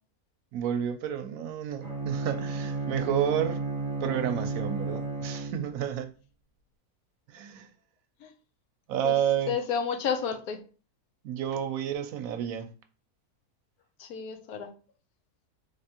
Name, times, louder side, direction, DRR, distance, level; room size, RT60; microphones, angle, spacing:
voice 1, 0.5-3.6 4.0-6.1 7.3-7.7 8.9-9.5 11.2-12.7, right 9 dB, 70° right, 0.9 m, -30 dB
Bowed string instrument, 1.8-6.0, right 3 dB, 40° right, 1.0 m, -33 dB
voice 2, 9.5-10.6 14.0-14.7, left 7 dB, 80° left, 1.1 m, -31 dB
3.5 x 3.3 x 2.8 m
omnidirectional pair, 1.6 m